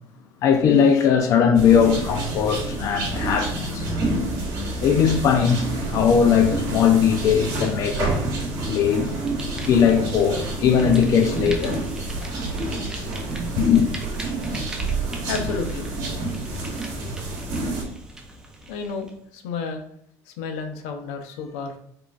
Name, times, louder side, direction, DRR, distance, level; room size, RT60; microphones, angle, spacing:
voice 1, 0.4-4.2 4.8-5.6 5.9-8.2 8.7-9.1 9.7-11.8 13.6-13.8, left 7 dB, 45° left, 0.4 m, -19 dB
sound 1, 1.5-17.8, right 2 dB, 50° right, 1.2 m, -28 dB
Fire, 5.9-19.2, right 1 dB, 10° right, 0.6 m, -40 dB
voice 2, 15.3-15.9 18.7-19.8 20.3-21.8, left 5 dB, 90° left, 0.6 m, -31 dB
3.8 x 3.1 x 2.4 m
cardioid pair, 140°, 8 cm